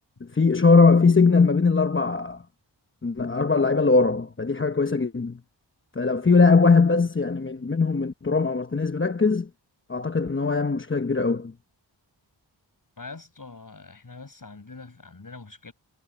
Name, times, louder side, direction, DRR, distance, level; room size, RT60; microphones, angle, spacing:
voice 1, 0.3-2.4 3.0-5.4 6.0-9.5 9.9-11.5, left 4 dB, 30° left, 1.0 m, -20 dB
voice 2, 13.0-15.7, left 3 dB, 45° left, 7.8 m, -43 dB
wide cardioid pair, 65°, 44 cm